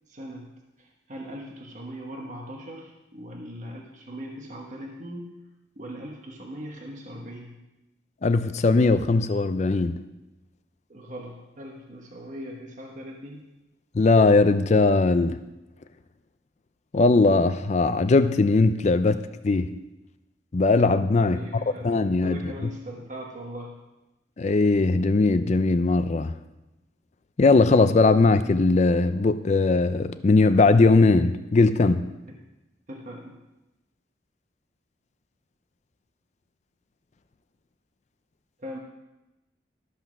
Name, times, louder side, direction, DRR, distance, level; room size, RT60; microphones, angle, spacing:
voice 1, 0.1-0.5 0.8-5.3 5.8-7.6 10.9-13.4 21.2-23.7 32.3-32.4 32.9-33.4 38.6-38.8, equal, 40° right, 1.1 m, -40 dB
voice 2, 8.2-10.0 13.9-15.4 16.9-19.8 20.5-21.4 21.8-22.5 24.4-26.3 27.4-32.1, left 3 dB, 40° left, 0.4 m, -20 dB
13.0 x 5.7 x 6.1 m
head